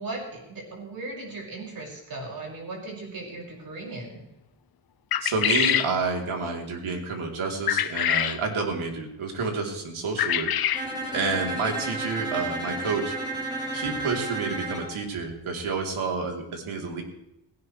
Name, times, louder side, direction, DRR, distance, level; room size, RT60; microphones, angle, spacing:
voice 1, 0.0-4.2, right 2 dB, 45° right, -1 dB, 6.1 m, -37 dB
sound 1, 5.1-5.9 7.7-8.4 10.2-10.9, left 10 dB, 45° left, 0.6 m, -24 dB
voice 2, 5.2-10.5 11.1-13.2 13.7-17.0, right 4 dB, 75° right, 1 dB, 3.6 m, -29 dB
Bowed string instrument, 10.7-15.0, right 2 dB, 10° right, 2.9 m, -32 dB
18.0 x 17.0 x 3.3 m, 0.89 s
wide cardioid pair, 155°, 50 cm